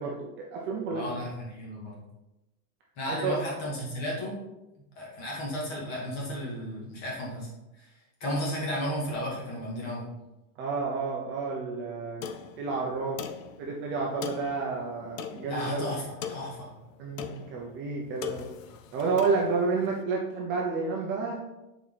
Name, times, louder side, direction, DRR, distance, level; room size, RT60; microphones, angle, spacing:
voice 1, 0.0-1.2 3.1-3.4 10.6-12.2 12.6-13.2 13.6-15.9 17.0-18.5 18.9-21.4, right 4 dB, 25° right, -2 dB, 0.8 m, -30 dB
voice 2, 0.9-2.0 3.0-4.4 4.7-7.5 7.7-7.9 8.2-10.1 15.4-16.7, equal, 35° left, -4 dB, 2.6 m, -34 dB
sound 1, 12.2-20.0, left 7 dB, 60° left, 0.7 m, -42 dB
6.8 x 4.5 x 4.2 m, 0.97 s
supercardioid pair, 165°, 45 cm